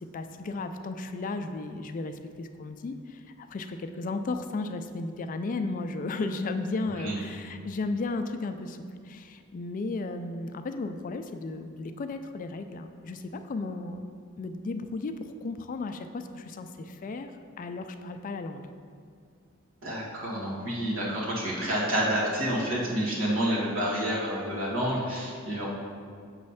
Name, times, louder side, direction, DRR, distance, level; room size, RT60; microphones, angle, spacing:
voice 1, 0.1-14.1 14.4-17.3 17.6-18.7, left 3 dB, 40° left, 8 dB, 0.3 m, -34 dB
voice 2, 19.8-25.7, equal, 75° right, -5 dB, 1.6 m, -29 dB
7.0 x 3.2 x 5.6 m, 2.1 s
head